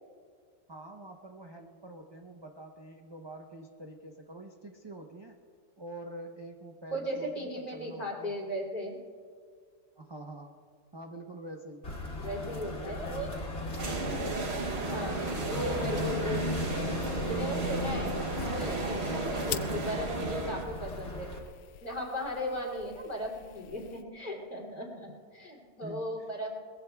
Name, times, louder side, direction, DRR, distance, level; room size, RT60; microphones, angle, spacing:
voice 1, 0.7-5.4 5.8-8.3 10.0-10.6 10.9-11.8 12.7-14.3 25.8-26.1, right 1 dB, 25° right, 2 dB, 0.6 m, -46 dB
voice 2, 6.9-9.0 12.2-13.6 14.7-16.9 17.1-18.1 18.4-21.3 21.8-26.5, equal, 30° left, -3 dB, 3.1 m, -37 dB
sound 1, 11.8-21.4, left 1 dB, 50° left, 3.0 m, -37 dB
sound 2, 13.8-20.7, right 3 dB, 45° right, 1.1 m, -34 dB
sound 3, 16.3-24.0, left 10 dB, 75° left, 1.0 m, -46 dB
22.5 x 20.0 x 2.3 m, 2.1 s
omnidirectional pair, 1.6 m